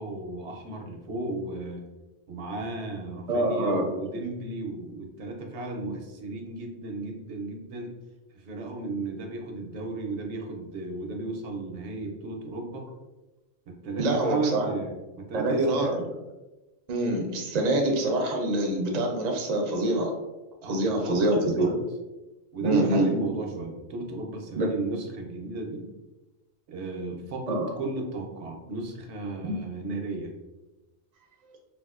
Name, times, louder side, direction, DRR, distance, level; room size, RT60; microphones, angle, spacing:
voice 1, 0.0-1.8 2.3-7.9 8.4-12.8 13.8-15.9 20.6-21.7 22.5-25.9 26.7-30.3, right 3 dB, 75° right, 2 dB, 0.9 m, -34 dB
voice 2, 3.3-3.9 14.0-14.7 15.3-16.1 16.9-20.1 20.7-21.7 22.6-23.1 24.6-24.7 27.5-27.7, right 1 dB, 50° right, 1 dB, 0.5 m, -25 dB
3.4 x 2.3 x 2.3 m, 1.1 s
omnidirectional pair, 1.2 m